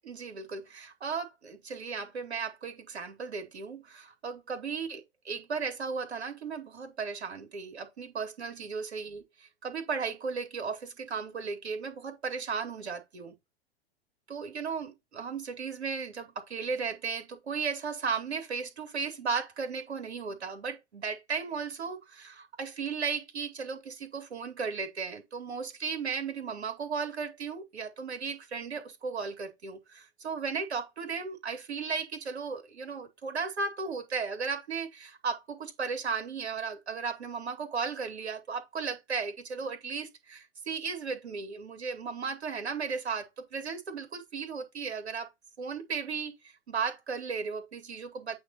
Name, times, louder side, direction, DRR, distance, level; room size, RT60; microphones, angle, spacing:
voice 1, 0.0-13.3 14.3-45.3 45.6-46.3 46.7-48.4, right 5 dB, 80° right, 2.7 m, -35 dB
8.9 x 3.6 x 4.1 m
hypercardioid pair, 95°, 32 cm